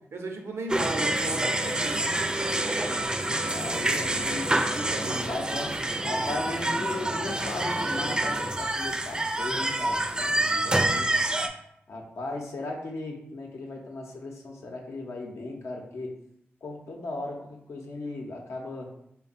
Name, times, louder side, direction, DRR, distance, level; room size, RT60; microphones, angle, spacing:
voice 1, 0.0-2.8 4.7-5.4 10.4-11.0, right 2 dB, 80° right, 4 dB, 0.5 m, -37 dB
sound 1, 0.7-11.5, right 1 dB, 20° right, 0.4 m, -27 dB
voice 2, 3.5-4.5 5.3-5.7 6.0-10.3 10.6-11.1 11.9-16.1 16.6-18.9, left 2 dB, 85° left, 0 dB, 0.7 m, -36 dB
3.5 x 2.1 x 4.0 m, 0.76 s
cardioid pair, 50°, 4 cm